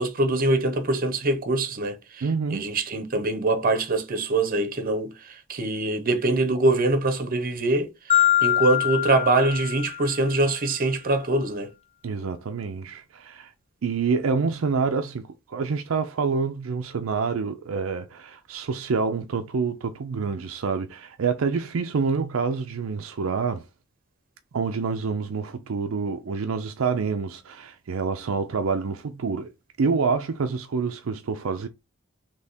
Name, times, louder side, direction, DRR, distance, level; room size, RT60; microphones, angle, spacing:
voice 1, 0.0-11.7, right 2 dB, 45° right, 0.8 m, -24 dB
voice 2, 2.2-2.7 12.0-13.5 13.8-23.7 24.5-29.5 29.8-31.7, right 5 dB, 80° right, 0.5 m, -27 dB
Marimba xylophone, 8.1-10.3, left 12 dB, 30° left, 0.5 m, -23 dB
3.5 x 2.9 x 4.1 m
head